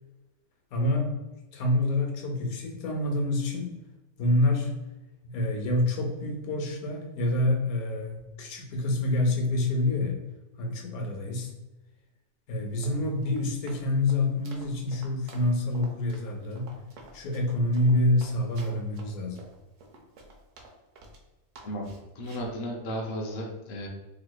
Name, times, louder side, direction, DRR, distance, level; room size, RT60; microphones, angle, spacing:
voice 1, 0.7-1.1 1.5-3.8 4.2-4.7 5.2-10.2 10.6-11.5 12.5-16.7 17.1-19.4, left 1 dB, 80° left, 2 dB, 1.1 m, -27 dB
Run, 12.7-21.2 21.6-22.5, right 2 dB, 65° right, 1.0 m, -50 dB
voice 2, 21.6-23.9, equal, 65° left, 0 dB, 0.5 m, -34 dB
3.3 x 3.0 x 2.3 m, 1.1 s
omnidirectional pair, 1.5 m